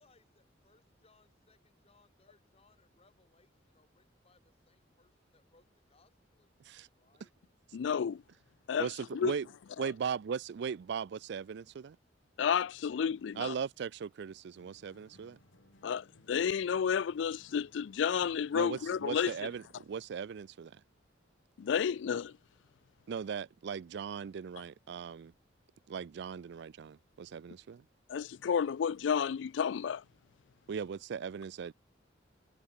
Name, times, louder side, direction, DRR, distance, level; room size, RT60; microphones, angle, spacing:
voice 1, 0.0-7.3, left 3 dB, 35° left, 4.2 m, -69 dB
voice 2, 7.7-8.2 8.7-8.9 9.1-9.3 12.4-13.5 15.8-19.3 21.6-22.3 28.1-30.0, left 7 dB, 70° left, 0.4 m, -31 dB
voice 3, 8.8-9.5 9.8-12.0 13.4-15.4 18.5-20.8 23.1-25.3 25.9-27.9 30.7-31.7, right 6 dB, 65° right, 0.4 m, -38 dB
sound 1, 14.5-19.9, left 1 dB, 85° left, 5.5 m, -63 dB
head